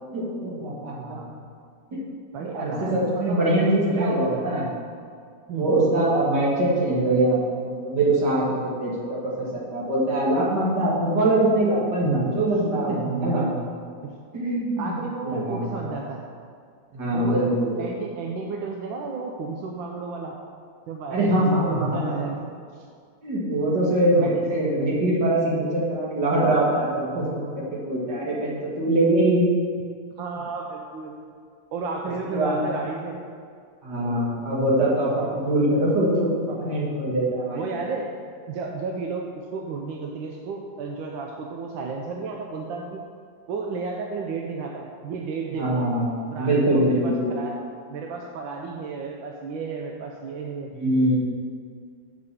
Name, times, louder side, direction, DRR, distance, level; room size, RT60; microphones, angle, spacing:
voice 1, 0.1-1.2 1.9-2.0 2.6-4.7 5.6-13.4 14.3-14.9 15.2-15.8 16.9-17.9 21.1-22.2 23.2-29.5 32.3-32.6 33.8-37.6 45.5-47.3 50.7-51.1, right 1 dB, 60° right, -6 dB, 2.5 m, -23 dB
voice 2, 0.9-1.4 2.3-4.4 5.5-5.7 10.1-10.3 12.0-12.4 12.9-14.1 14.8-16.2 17.1-17.5 17.8-20.4 20.9-22.9 24.2-24.7 30.2-31.2 31.7-33.2 37.5-38.1 38.5-43.0 43.5-45.9 46.3-47.6 47.9-50.7, right 4 dB, 85° right, 1 dB, 1.4 m, -33 dB
6.6 x 5.2 x 7.0 m, 2.2 s
omnidirectional pair, 2.0 m